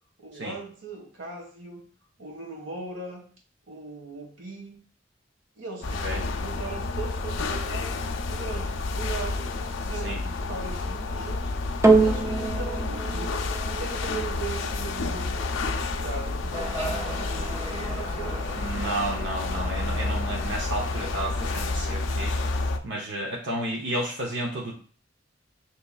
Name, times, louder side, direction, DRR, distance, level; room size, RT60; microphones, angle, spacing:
voice 1, 0.2-1.8 2.2-3.2 3.7-4.7 5.5-9.5 9.8-11.5 12.0-13.4 13.7-15.4 15.8-18.7, right 3 dB, 90° right, -1 dB, 1.5 m, -39 dB
sound 1, 5.8-22.8, left 3 dB, 90° left, 0.5 m, -30 dB
sound 2, 11.8-20.4 21.1-21.2, right 3 dB, 15° right, 0.5 m, -28 dB
sound 3, 16.5-22.0, right 1 dB, 30° right, 1.1 m, -39 dB
voice 2, 18.6-24.7, right 1 dB, 65° right, -2 dB, 0.8 m, -32 dB
6.7 x 3.0 x 2.3 m, 0.43 s
head